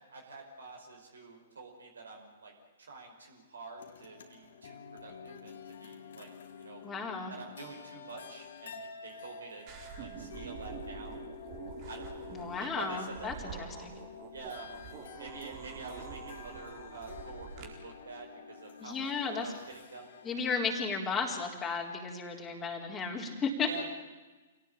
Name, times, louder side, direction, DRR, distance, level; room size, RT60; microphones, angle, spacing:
voice 1, 0.1-2.5 2.8-6.3 6.6-6.8 7.3-9.6 10.0-11.3 11.9-13.7 14.3-14.7 15.2-20.1 23.7-23.8, right 3 dB, 70° right, 2 dB, 5.0 m, -47 dB
sound 1, 3.8-22.7, left 6 dB, 60° left, 2.7 m, -50 dB
voice 2, 6.8-7.3 12.3-13.9 18.8-19.5 20.2-23.7, left 5 dB, 15° left, -2 dB, 4.1 m, -34 dB
sound 2, 9.7-17.7, right 6 dB, 35° right, 4.3 m, -46 dB
27.0 x 18.0 x 8.9 m, 1.2 s
figure-of-eight pair, 115°, 0 cm